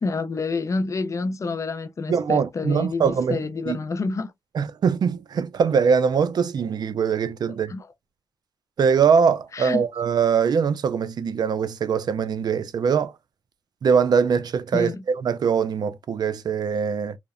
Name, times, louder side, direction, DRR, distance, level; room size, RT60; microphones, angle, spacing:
voice 1, 0.0-4.3 7.7-7.9 9.5-9.9 14.7-15.0, left 4 dB, 45° left, 0.4 m, -28 dB
voice 2, 2.1-3.8 4.5-7.7 8.8-13.1 13.8-17.2, right 6 dB, 70° right, 0.3 m, -22 dB
2.7 x 2.0 x 2.3 m
cardioid pair, 70°, 7 cm